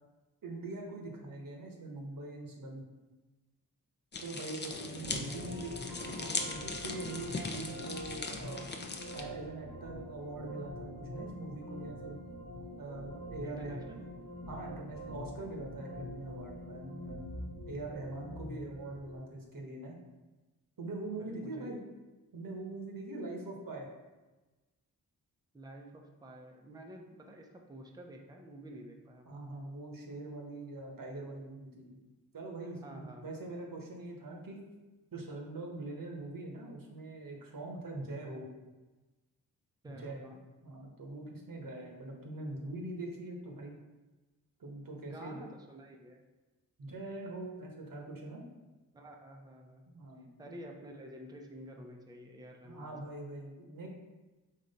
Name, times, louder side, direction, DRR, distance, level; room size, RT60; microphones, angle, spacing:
voice 1, 0.4-2.9 4.2-8.7 9.1-12.2 12.8-13.9 14.5-17.3 17.7-20.0 20.8-21.8 22.3-23.9 29.3-32.0 32.3-34.6 35.1-38.5 39.8-40.3 40.6-43.7 44.6-45.5 46.8-48.4 49.9-50.6 52.6-53.9, right 2 dB, 50° right, 0 dB, 1.2 m, -43 dB
sound 1, 4.1-9.2, left 3 dB, 25° left, 0.6 m, -39 dB
sound 2, 4.7-19.2, equal, 85° right, 1.1 m, -45 dB
voice 2, 13.4-14.1 18.3-18.4 21.2-21.7 25.5-29.4 32.6-33.3 39.8-40.4 45.0-46.2 48.9-49.8 50.4-52.9, right 1 dB, 10° right, 1 dB, 0.7 m, -50 dB
3.8 x 3.1 x 4.1 m, 1.2 s
supercardioid pair, 45°, 42 cm